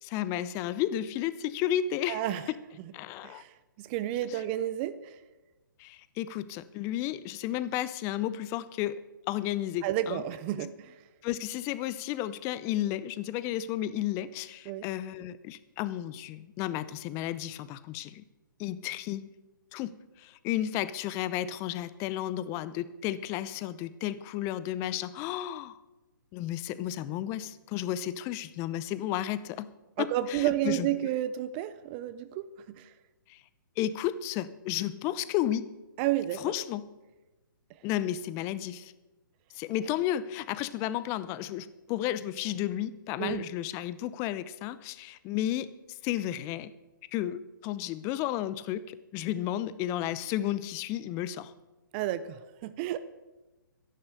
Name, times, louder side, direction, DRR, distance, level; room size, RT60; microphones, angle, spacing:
voice 1, 0.0-2.2 2.9-3.4 4.3-4.4 5.8-9.0 9.3-10.2 10.6-10.7 11.2-18.2 18.6-19.3 19.7-25.7 26.3-29.7 30.0-30.9 33.3-33.4 33.8-35.7 36.4-36.8 37.8-38.9 39.5-46.7 47.1-51.5, left 12 dB, 25° left, 16 dB, 0.6 m, -33 dB
voice 2, 2.1-2.4 3.2-3.5 3.8-5.2 9.8-11.0 14.7-14.8 30.0-32.5 32.7-32.9 36.0-36.4 43.2-43.5 51.9-53.0, right 13 dB, 30° right, 14 dB, 0.6 m, -31 dB
13.0 x 11.0 x 6.7 m, 1.1 s
hypercardioid pair, 135°, 11 cm